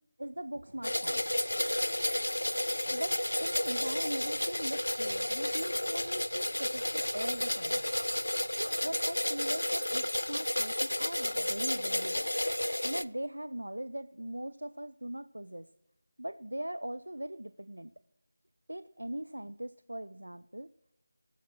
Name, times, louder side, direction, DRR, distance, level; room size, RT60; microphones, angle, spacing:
voice 1, 0.2-1.2 2.9-7.8 8.5-12.3 12.8-15.7 16.2-17.9 18.7-20.7, right 1 dB, 75° right, 13 dB, 0.4 m, -40 dB
sound 1, 0.6-9.6, right 1 dB, 45° right, 1.4 m, -56 dB
sound 2, 0.8-13.0, left 1 dB, 75° left, 0.5 m, -32 dB
16.5 x 7.2 x 6.2 m, 0.84 s
figure-of-eight pair, 165°, 0 cm